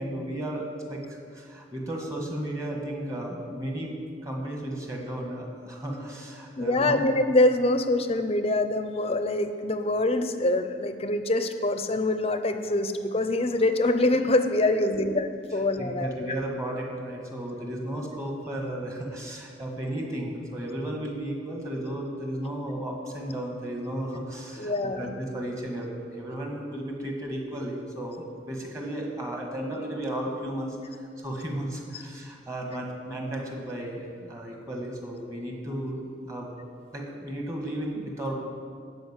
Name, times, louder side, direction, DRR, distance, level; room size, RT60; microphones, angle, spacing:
voice 1, 0.0-3.9 4.2-7.0 14.7-15.1 15.5-36.5 36.9-38.3, right 1 dB, 15° right, 0 dB, 1.7 m, -34 dB
voice 2, 6.6-16.3 24.6-25.1, left 2 dB, 30° left, 8 dB, 0.6 m, -25 dB
13.0 x 5.2 x 8.2 m, 2.3 s
head